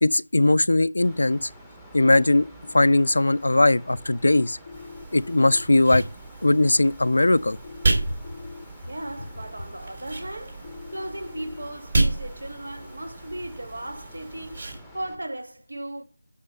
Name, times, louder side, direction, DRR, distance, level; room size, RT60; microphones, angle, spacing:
voice 1, 0.0-1.5 1.9-2.5 2.7-4.6 5.1-6.0 6.4-7.6, left 2 dB, 65° left, 0.4 m, -19 dB
Mechanical fan, 1.0-15.2, equal, ahead, 0.8 m, -48 dB
sound 1, 4.7-5.6 7.6-8.6 10.6-11.6, left 5 dB, 30° left, 0.6 m, -42 dB
sound 2, 4.7-14.8, right 2 dB, 45° right, 3.1 m, -31 dB
voice 2, 8.8-16.0, right 1 dB, 70° right, 1.5 m, -37 dB
6.4 x 5.5 x 5.4 m
figure-of-eight pair, 165°, 0 cm